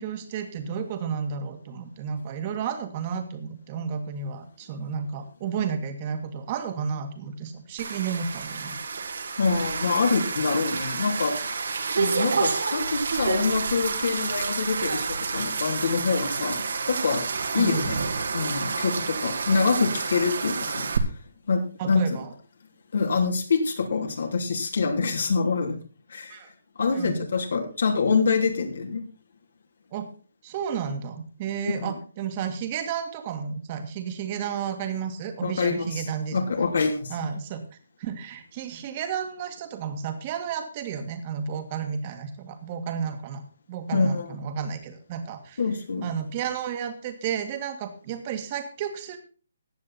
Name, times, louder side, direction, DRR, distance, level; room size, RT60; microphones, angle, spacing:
voice 1, 0.0-8.8 17.6-17.9 21.8-22.3 26.3-26.5 26.9-27.2 29.9-30.1 30.4-36.5 37.1-37.6 38.0-43.4 43.7-45.6 46.0-49.2, right 7 dB, 25° right, 7 dB, 2.0 m, -32 dB
sound 1, 7.8-21.0, right 5 dB, 65° right, 2.3 m, -29 dB
voice 2, 9.4-11.5 12.0-16.6 16.9-17.2 17.5-18.0 18.3-21.1 21.5-21.6 21.9-22.2 22.9-25.8 26.1-26.4 26.8-29.1 31.7-31.9 35.4-36.0 36.3-37.2 43.9-44.4 45.6-46.1, left 4 dB, 65° left, 3 dB, 3.0 m, -25 dB
15.5 x 9.6 x 4.3 m, 0.38 s
hypercardioid pair, 170°, 0 cm